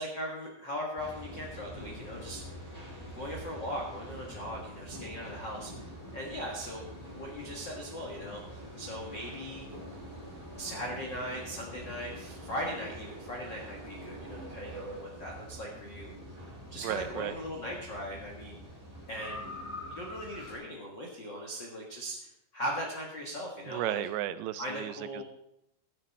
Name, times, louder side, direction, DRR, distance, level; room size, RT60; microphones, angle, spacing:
voice 1, 0.0-2.4 3.1-9.6 10.5-16.4 16.7-18.6 19.1-19.5 19.9-24.0 24.6-25.2, equal, 85° left, -2 dB, 1.0 m, -39 dB
sound 1, 1.0-20.5, equal, 10° right, 2.0 m, -45 dB
voice 2, 16.8-17.3 23.7-25.2, right 13 dB, 90° right, 13 dB, 2.9 m, -34 dB
14.0 x 10.0 x 4.2 m, 0.80 s
omnidirectional pair, 5.0 m